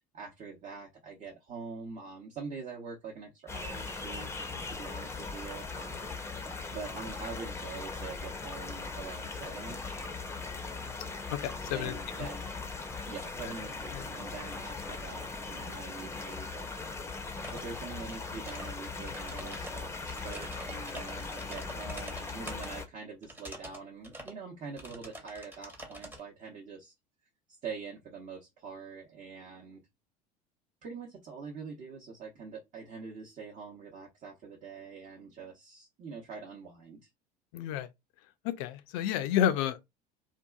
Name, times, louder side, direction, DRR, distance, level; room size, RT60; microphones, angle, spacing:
voice 1, 0.1-6.3 6.7-10.1 11.7-12.5 13.1-16.8 17.5-26.9 27.5-29.8 30.8-37.1, right 5 dB, 35° right, 0.9 m, -44 dB
sound 1, 3.5-22.9, left 4 dB, 15° left, 0.6 m, -39 dB
voice 2, 11.3-12.3 13.9-14.0 37.5-37.9 38.4-39.8, left 10 dB, 55° left, 0.4 m, -30 dB
sound 2, 17.4-17.7 18.0-18.7 19.0-22.7 23.2-23.8 24.0-24.4 24.8-26.2, right 1 dB, 10° right, 0.9 m, -46 dB
2.7 x 2.4 x 2.3 m
figure-of-eight pair, 65°, 21 cm